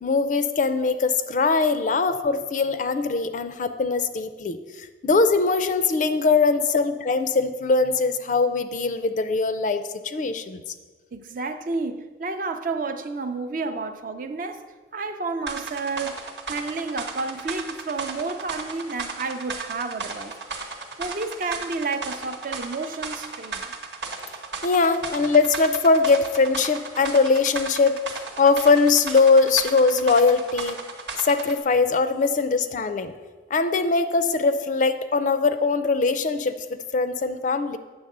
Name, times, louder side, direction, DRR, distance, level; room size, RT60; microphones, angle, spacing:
voice 1, 0.0-10.6 24.6-28.0 28.4-30.8 31.2-33.1 33.5-37.8, left 4 dB, 45° left, 0.4 m, -21 dB
voice 2, 1.6-1.9 11.1-14.6 14.9-20.7 21.0-23.7, right 3 dB, 50° right, 0.4 m, -31 dB
sound 1, 15.5-31.6, right 4 dB, 80° right, 1.0 m, -35 dB
8.6 x 3.6 x 6.6 m
head